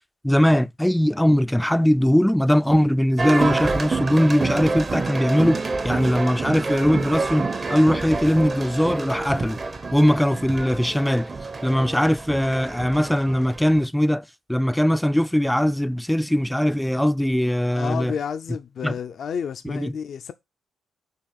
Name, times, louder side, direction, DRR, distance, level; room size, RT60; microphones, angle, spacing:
voice 1, 0.2-9.6 9.9-11.3 11.6-14.2 14.5-18.1 18.8-18.9 19.6-19.9, equal, 5° left, 0.4 m, -20 dB
sound 1, 3.2-13.9, right 3 dB, 35° right, 0.8 m, -28 dB
voice 2, 17.7-20.3, left 7 dB, 65° left, 0.5 m, -31 dB
6.7 x 3.0 x 5.7 m
supercardioid pair, 65°, 0 cm